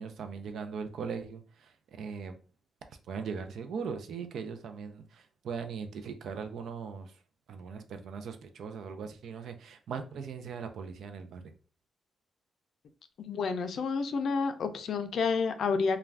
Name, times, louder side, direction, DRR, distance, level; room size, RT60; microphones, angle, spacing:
voice 1, 0.0-2.4 3.1-7.2 7.5-11.5, right 6 dB, 70° right, 7 dB, 0.4 m, -39 dB
voice 2, 13.2-16.0, left 5 dB, 60° left, 8 dB, 0.4 m, -29 dB
2.4 x 2.2 x 3.3 m, 0.38 s
cardioid pair, 130°, 0 cm